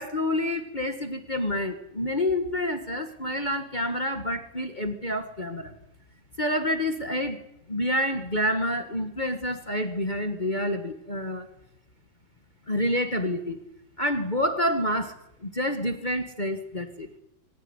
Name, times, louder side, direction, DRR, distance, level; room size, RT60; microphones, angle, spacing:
voice 1, 0.0-5.7 6.4-7.4 7.7-11.5 12.7-13.6 14.0-17.1, left 1 dB, 25° left, 7 dB, 1.8 m, -28 dB
24.5 x 16.0 x 9.9 m, 0.81 s
omnidirectional pair, 2.1 m